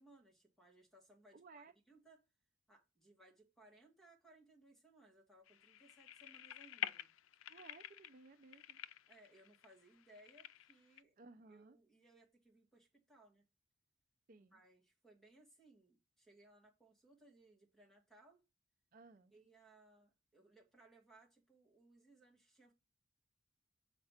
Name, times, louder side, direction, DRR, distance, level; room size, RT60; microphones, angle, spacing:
voice 1, 0.0-2.3 2.7-7.1 8.5-8.6 9.1-11.2 11.5-13.5 14.5-18.4 19.3-22.7, right 2 dB, ahead, 2.0 m, -66 dB
voice 2, 1.3-1.7 7.4-8.8 11.2-11.8 14.3-14.6 18.9-19.3, right 3 dB, 45° right, 0.5 m, -59 dB
sound 1, 5.5-11.0, left 11 dB, 80° left, 0.4 m, -49 dB
6.6 x 4.5 x 5.7 m
head